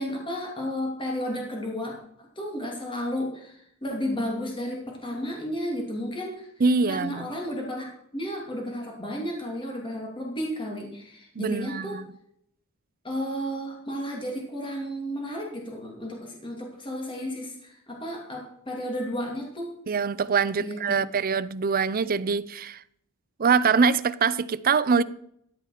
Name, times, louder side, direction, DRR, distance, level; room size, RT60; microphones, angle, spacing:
voice 1, 0.0-2.0 2.4-6.5 6.9-12.0 13.0-19.7 20.6-21.0, equal, 25° left, 2.7 m, -33 dB
voice 2, 6.6-7.3 11.4-12.1 19.9-22.8 23.4-25.0, right 5 dB, 40° right, 0.5 m, -24 dB
13.5 x 9.1 x 5.0 m
head